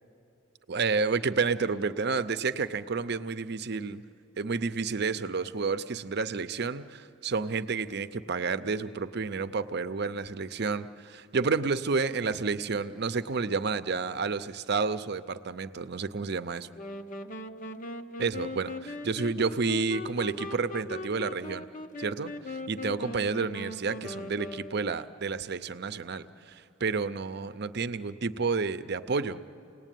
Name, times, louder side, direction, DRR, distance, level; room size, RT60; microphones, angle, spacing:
voice 1, 0.7-4.0 4.4-16.7 18.2-21.7 22.0-29.4, right 4 dB, 60° right, 12 dB, 0.6 m, -30 dB
sound 1, 16.7-25.2, left 1 dB, 45° left, 0.8 m, -40 dB
28.5 x 19.0 x 9.2 m, 2.8 s
head